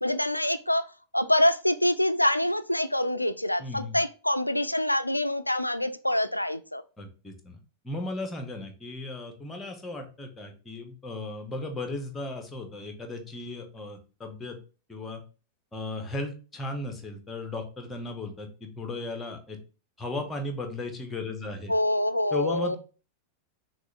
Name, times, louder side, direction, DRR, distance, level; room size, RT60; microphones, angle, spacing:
voice 1, 0.0-0.8 1.1-6.8 21.7-22.8, left 1 dB, 85° left, 0.3 m, -25 dB
voice 2, 3.6-4.0 7.0-7.6 7.8-14.6 14.9-15.2 15.7-19.6 20.0-21.7 22.3-22.8, left 2 dB, 15° left, 0.9 m, -35 dB
6.0 x 2.4 x 3.3 m
figure-of-eight pair, 90°, 0 cm